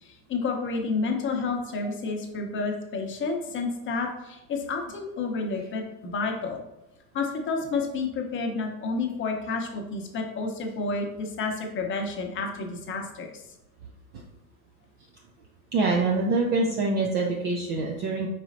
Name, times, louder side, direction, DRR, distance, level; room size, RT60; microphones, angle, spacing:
voice 1, 0.0-6.6 7.1-13.4, left 4 dB, 25° left, 3 dB, 0.8 m, -30 dB
voice 2, 15.7-18.3, right 3 dB, 25° right, 0 dB, 0.4 m, -25 dB
4.8 x 4.1 x 2.6 m, 0.91 s
hypercardioid pair, 90°, 47 cm